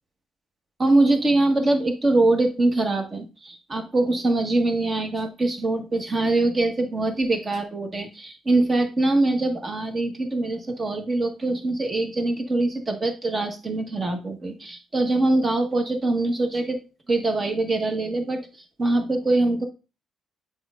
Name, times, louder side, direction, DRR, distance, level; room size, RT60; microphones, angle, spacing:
voice 1, 0.8-16.8 17.1-19.7, right 2 dB, 30° right, 5 dB, 1.5 m, -23 dB
7.7 x 5.4 x 2.5 m, 0.30 s
cardioid pair, 90°, 0 cm